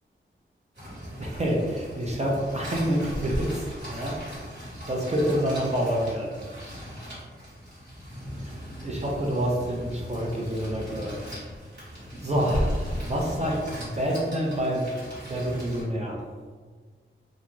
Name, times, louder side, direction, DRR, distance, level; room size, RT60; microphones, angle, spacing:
sound 1, 0.7-15.8, equal, 55° right, 1.5 m, -40 dB
voice 1, 1.2-4.2 4.9-6.4 8.5-8.6 8.8-11.5 11.9-14.9 15.3-16.2, equal, 35° right, -3 dB, 0.5 m, -27 dB
2.5 x 2.4 x 3.0 m, 1.5 s
wide cardioid pair, 85°, 21 cm